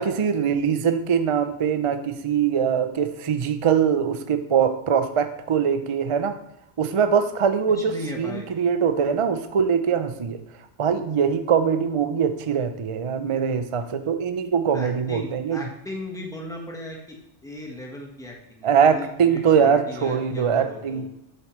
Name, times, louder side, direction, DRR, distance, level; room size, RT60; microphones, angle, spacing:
voice 1, 0.0-6.4 6.8-10.4 10.8-15.6 18.6-21.1, right 7 dB, 45° right, 9 dB, 0.4 m, -22 dB
voice 2, 7.7-8.5 14.6-17.2 17.4-21.1, left 1 dB, 5° left, -1 dB, 1.3 m, -37 dB
7.8 x 7.5 x 3.1 m, 0.82 s
omnidirectional pair, 1.2 m